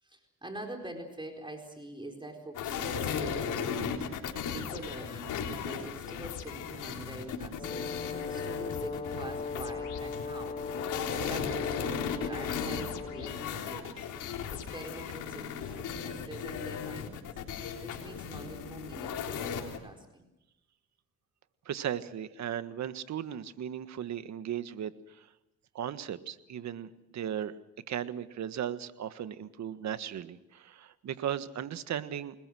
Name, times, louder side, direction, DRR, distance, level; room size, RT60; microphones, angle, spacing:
voice 1, 0.0-14.1 14.5-17.3 17.8-20.3, right 1 dB, 15° right, 3 dB, 4.5 m, -45 dB
sound 1, 2.5-19.8, left 7 dB, 85° left, 3.7 m, -36 dB
Brass instrument, 7.6-13.6, left 4 dB, 25° left, 0.8 m, -39 dB
voice 2, 21.6-25.3 25.7-27.5 27.9-32.3, right 9 dB, 65° right, 12 dB, 1.6 m, -36 dB
28.5 x 21.0 x 6.3 m, 0.91 s
cardioid pair, 90°, 30 cm